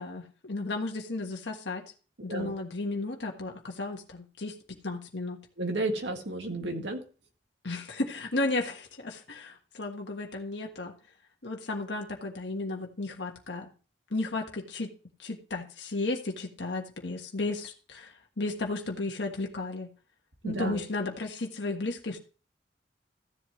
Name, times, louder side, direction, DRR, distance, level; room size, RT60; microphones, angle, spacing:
voice 1, 0.0-1.8 2.2-4.5 4.8-5.4 7.6-10.9 11.4-13.7 14.1-14.9 15.2-18.1 18.4-19.9 20.4-22.2, left 2 dB, 80° left, 2 dB, 1.5 m, -34 dB
voice 2, 5.6-7.0 20.4-20.8, right 2 dB, 90° right, 3 dB, 2.0 m, -32 dB
15.0 x 7.7 x 3.2 m, 0.37 s
head